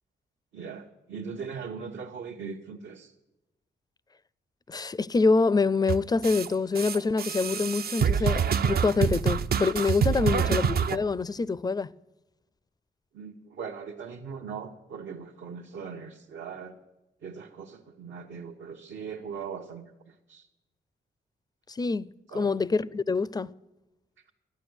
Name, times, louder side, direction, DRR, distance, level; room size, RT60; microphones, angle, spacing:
voice 1, 0.5-3.1 10.1-10.5 13.1-16.7 17.2-19.9 20.3-20.5 22.3-22.6, right 6 dB, 75° right, 1.0 m, -40 dB
voice 2, 4.7-11.9 21.7-23.5, left 4 dB, 20° left, 0.4 m, -26 dB
sound 1, 5.9-6.5 6.7-11.0, right 7 dB, 55° right, 0.5 m, -26 dB
12.0 x 9.5 x 7.9 m
cardioid pair, 65°, 19 cm